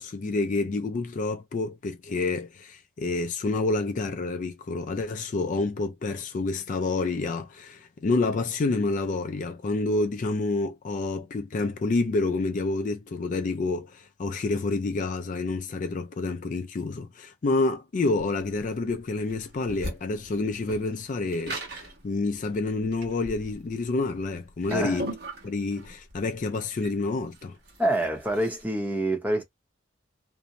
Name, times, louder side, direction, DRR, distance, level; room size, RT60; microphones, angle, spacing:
voice 1, 0.0-25.1 25.4-27.6, left 3 dB, 40° left, 0.3 m, -28 dB
sound 1, 18.2-28.6, right 1 dB, 55° right, 1.1 m, -40 dB
voice 2, 24.7-25.0 27.8-29.4, right 1 dB, 10° right, 0.7 m, -26 dB
2.6 x 2.0 x 2.8 m
head